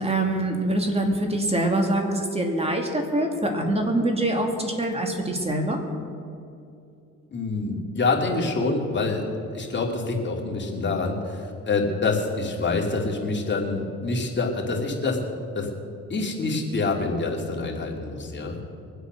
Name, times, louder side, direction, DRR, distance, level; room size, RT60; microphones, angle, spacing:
voice 1, 0.0-5.8, right 1 dB, 20° right, 3 dB, 2.6 m, -24 dB
voice 2, 7.3-9.2 9.5-15.2 15.5-15.7 16.1-18.6, left 3 dB, 35° left, 0 dB, 2.7 m, -26 dB
23.0 x 8.1 x 6.2 m, 2.6 s
cardioid pair, 90°, 30 cm